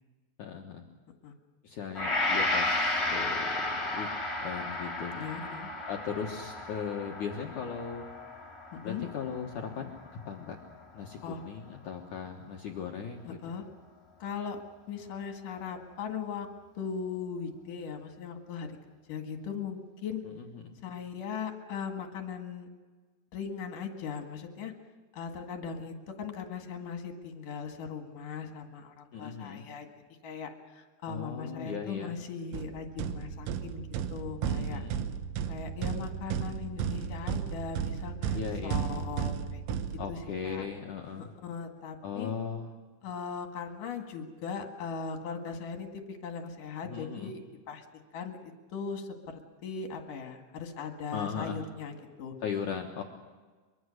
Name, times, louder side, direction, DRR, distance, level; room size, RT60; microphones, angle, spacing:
voice 1, 0.4-0.8 1.6-4.1 4.4-5.2 5.9-8.1 8.8-9.9 10.3-10.6 10.9-13.4 20.4-20.7 29.1-29.7 31.1-32.1 34.4-35.0 38.3-38.8 40.0-41.3 42.0-42.7 46.8-47.3 51.1-51.6 52.4-53.0, left 6 dB, 80° left, 1 dB, 1.7 m, -38 dB
Gong, 1.9-10.3 10.7-10.9, left 2 dB, 15° left, 2.7 m, -33 dB
voice 2, 5.1-5.7 8.8-9.0 11.2-11.4 13.3-13.7 14.2-14.6 14.9-16.5 16.7-18.7 19.1-20.2 20.8-22.7 23.3-24.7 25.1-29.9 30.2-34.9 35.5-39.6 40.1-40.7 41.2-42.3 43.0-47.4 47.7-47.9 48.1-49.1 49.6-52.3, left 6 dB, 55° left, 4 dB, 2.8 m, -39 dB
sound 1, 32.5-40.5, right 8 dB, 75° right, 3.2 m, -34 dB
24.0 x 24.0 x 6.5 m, 1.4 s
omnidirectional pair, 5.8 m